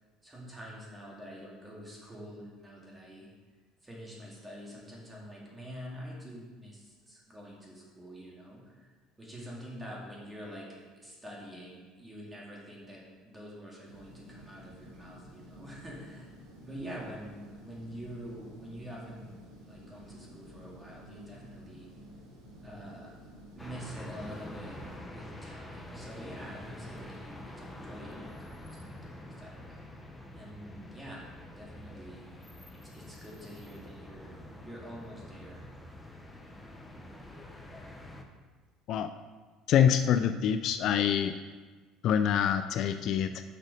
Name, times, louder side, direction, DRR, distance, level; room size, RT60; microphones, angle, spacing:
voice 1, 0.2-3.3 3.8-8.9 9.2-16.3 16.6-19.4 19.7-21.9 22.6-23.1 23.6-24.8 25.1-29.8 30.3-31.3 31.6-32.2 32.8-35.6, equal, 15° right, -4 dB, 2.2 m, -46 dB
sound 1, 13.8-25.0, equal, 85° right, 2.6 m, -52 dB
sound 2, 23.6-38.2, left 1 dB, 5° left, 0.7 m, -46 dB
voice 2, 39.7-41.3 42.0-43.4, left 9 dB, 55° left, 9 dB, 0.3 m, -26 dB
6.7 x 6.0 x 5.2 m, 1.4 s
cardioid pair, 130°, 0 cm